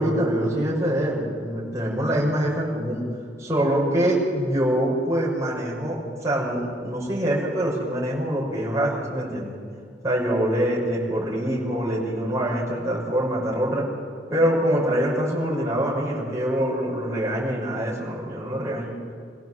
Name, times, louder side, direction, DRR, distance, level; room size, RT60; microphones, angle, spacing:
voice 1, 0.0-3.0 3.4-9.5 10.0-13.8 14.3-18.9, right 1 dB, 15° right, -5 dB, 6.5 m, -24 dB
26.0 x 16.5 x 7.9 m, 2.1 s
head